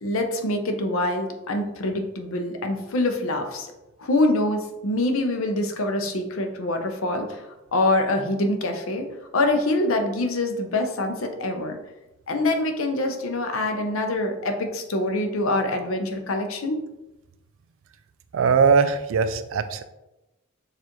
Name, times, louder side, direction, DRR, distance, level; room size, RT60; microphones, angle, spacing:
voice 1, 0.0-3.7 4.0-7.5 7.7-9.1 9.3-11.8 12.3-16.8, left 2 dB, 75° left, 5 dB, 0.7 m, -25 dB
voice 2, 18.3-19.8, right 5 dB, 65° right, 11 dB, 0.4 m, -20 dB
6.6 x 2.5 x 3.0 m, 0.97 s
head